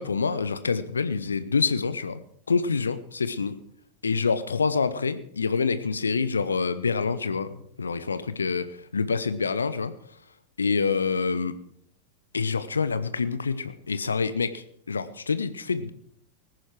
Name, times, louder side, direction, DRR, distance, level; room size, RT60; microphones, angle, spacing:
voice 1, 0.0-2.2 2.5-3.6 4.0-9.9 10.6-11.5 12.3-15.9, left 5 dB, 75° left, 14 dB, 0.8 m, -26 dB
19.5 x 10.5 x 4.7 m, 0.66 s
figure-of-eight pair, 90°, 0 cm